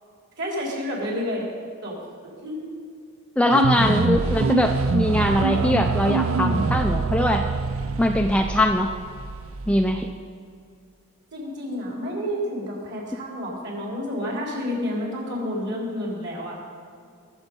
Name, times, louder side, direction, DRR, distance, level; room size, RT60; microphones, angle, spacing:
voice 1, 0.4-1.5 1.8-1.9 2.2-2.7 3.7-4.2 11.3-16.6, left 1 dB, 50° right, -3 dB, 3.6 m, -30 dB
voice 2, 3.4-7.5 8.0-8.9 9.7-10.1, left 1 dB, 5° left, 4 dB, 0.4 m, -21 dB
sound 1, 3.5-10.1, right 4 dB, 75° right, 0.6 m, -25 dB
21.5 x 7.2 x 5.3 m, 2.3 s
head